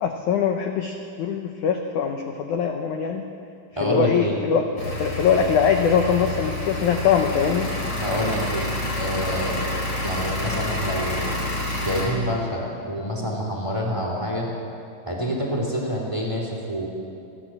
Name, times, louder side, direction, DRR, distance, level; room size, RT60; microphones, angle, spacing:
voice 1, 0.0-3.3 3.8-7.7, left 7 dB, 75° left, 4 dB, 1.8 m, -22 dB
voice 2, 3.7-4.4 8.0-8.6 8.9-11.4 11.8-12.6 12.9-14.5 15.1-16.9, equal, 10° right, -1 dB, 2.9 m, -27 dB
sound 1, 4.8-12.1, left 1 dB, 30° left, 4.9 m, -28 dB
29.5 x 11.5 x 7.7 m, 2.5 s
omnidirectional pair, 4.8 m